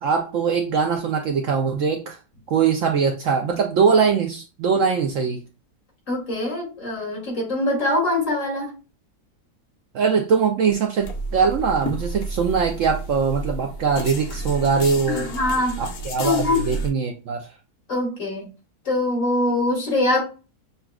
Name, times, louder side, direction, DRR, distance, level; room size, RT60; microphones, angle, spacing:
voice 1, 0.0-2.2 2.5-5.4 9.9-11.1 11.3-15.3 15.8-17.5, right 5 dB, 65° right, 3 dB, 0.8 m, -21 dB
voice 2, 6.1-8.7 15.1-15.8 16.2-16.6 17.9-18.5 18.9-20.2, left 2 dB, 50° left, -3 dB, 2.1 m, -23 dB
sound 1, 11.0-16.9, right 1 dB, 70° left, 1.2 m, -31 dB
6.7 x 2.4 x 2.3 m, 0.32 s
omnidirectional pair, 1.7 m